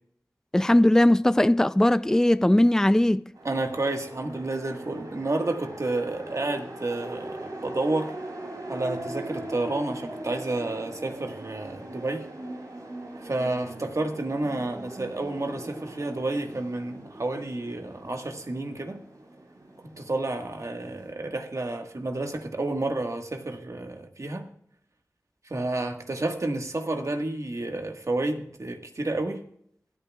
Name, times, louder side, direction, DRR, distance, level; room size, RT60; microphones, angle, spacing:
voice 1, 0.5-3.3, left 1 dB, 10° left, 0.4 m, -19 dB
sound 1, 3.3-21.1, right 1 dB, 80° right, 2.9 m, -41 dB
voice 2, 3.4-8.1 8.7-12.3 13.2-19.0 19.8-24.5 25.4-29.4, right 2 dB, 60° right, 1.6 m, -30 dB
26.0 x 9.0 x 2.4 m
cardioid pair, 40°, 6 cm